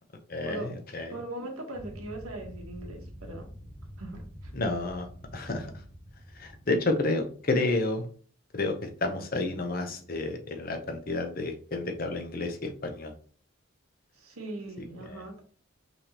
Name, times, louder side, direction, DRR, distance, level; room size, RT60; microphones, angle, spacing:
voice 1, 0.3-1.1 4.5-5.1 5.3-5.7 6.3-8.1 8.5-13.1 15.0-15.2, left 2 dB, 40° left, 5 dB, 0.7 m, -30 dB
voice 2, 1.1-3.5 4.0-4.5 14.1-15.4, right 2 dB, 90° right, 3 dB, 1.2 m, -40 dB
sound 1, 1.7-7.5, equal, 10° left, 2.3 m, -46 dB
5.4 x 3.4 x 2.9 m, 0.43 s
head